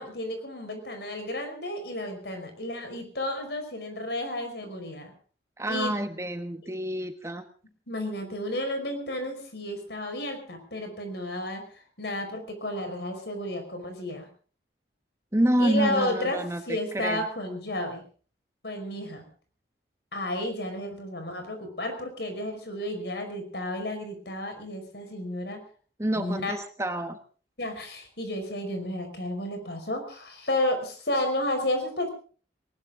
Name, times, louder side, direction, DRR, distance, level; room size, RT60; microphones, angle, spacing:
voice 1, 0.0-5.1 5.7-5.9 7.9-11.7 12.0-14.3 15.6-18.0 18.6-19.3 20.1-25.6 26.2-26.6 27.6-32.1, left 1 dB, 65° left, 6 dB, 5.2 m, -32 dB
voice 2, 5.6-7.4 15.3-17.3 26.0-27.2, right 1 dB, 15° right, 7 dB, 1.2 m, -28 dB
19.5 x 19.5 x 3.8 m, 0.41 s
head